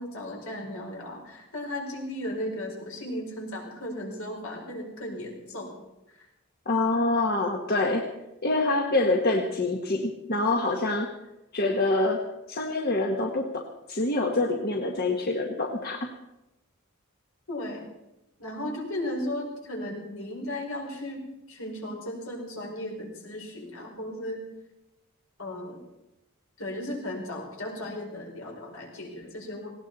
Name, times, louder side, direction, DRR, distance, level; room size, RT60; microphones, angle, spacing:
voice 1, 0.0-5.7 6.2-6.3 17.5-17.9 18.4-21.2 21.5-24.4 25.4-25.8 26.6-29.7, left 1 dB, 75° left, 0 dB, 5.0 m, -35 dB
voice 2, 6.6-8.0 8.4-11.1 11.5-16.1, left 2 dB, 45° left, 2 dB, 1.4 m, -26 dB
19.0 x 17.5 x 4.1 m, 0.94 s
head